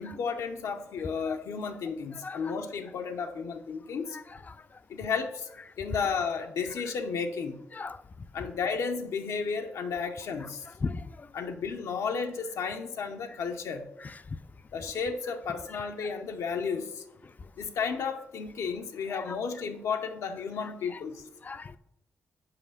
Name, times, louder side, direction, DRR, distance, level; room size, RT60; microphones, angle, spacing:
voice 1, 0.0-4.2 4.9-5.5 5.8-7.6 8.3-10.7 11.3-13.8 14.7-17.0 17.6-21.2, left 5 dB, 85° left, 4 dB, 0.7 m, -33 dB
voice 2, 2.2-2.6 4.1-4.6 7.7-8.0 10.8-11.3 19.1-19.4 20.9-21.0 21.4-21.8, left 4 dB, 30° left, 14 dB, 0.4 m, -38 dB
5.8 x 4.9 x 6.6 m, 0.82 s
cardioid pair, 95°, 5 cm